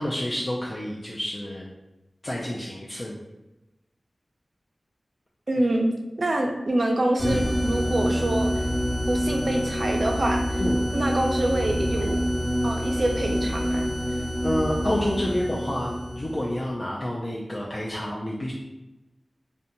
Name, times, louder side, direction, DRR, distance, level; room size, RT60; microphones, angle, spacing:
voice 1, 0.0-1.7 2.2-3.2 10.6-10.8 12.0-12.1 14.1-18.5, left 1 dB, 35° left, -5 dB, 0.3 m, -29 dB
voice 2, 5.5-5.9 6.2-8.7 9.1-10.6 10.9-12.2 12.6-13.9, right 1 dB, 55° right, 2 dB, 0.4 m, -26 dB
sound 1, 7.2-16.6, equal, 10° left, 1.0 m, -26 dB
2.8 x 2.1 x 2.6 m, 1.0 s
wide cardioid pair, 80°, 0 cm